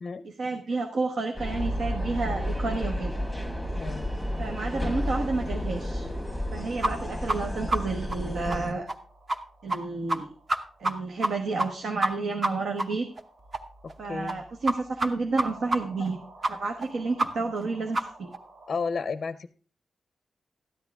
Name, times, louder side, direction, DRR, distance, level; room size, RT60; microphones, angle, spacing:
voice 1, 0.2-3.1 4.4-6.1 6.5-8.9 9.6-10.3 10.8-13.1 14.0-16.2 16.5-18.3, right 3 dB, 80° right, 4 dB, 1.2 m, -30 dB
sound 1, 1.3-8.7, left 1 dB, 5° right, 1.6 m, -32 dB
sound 2, 1.5-18.7, right 1 dB, 60° right, 2.6 m, -41 dB
sound 3, 6.8-6.9 7.3-7.4 7.7-7.8 8.1-8.2 8.5-8.6 8.9-9.0 9.3-9.4 9.7-9.8 10.1-10.2 10.5-10.9 11.2-11.3 11.6-11.7 12.0-12.1 12.4-12.5 12.8-12.9 13.2-13.3 13.5-13.6 13.9-14.0 14.3-14.4 14.7-14.8 15.0-15.1 15.4-15.5 15.7-15.8 16.1-16.2 16.4-16.5 16.8-16.9 17.2-17.3 17.6-17.7 17.9-18.0 18.3-18.4, right 2 dB, 30° right, 0.9 m, -26 dB
voice 2, 13.8-14.4 18.7-19.5, left 5 dB, 45° left, 13 dB, 0.5 m, -32 dB
13.5 x 10.5 x 3.4 m, 0.41 s
wide cardioid pair, 180°, 0 cm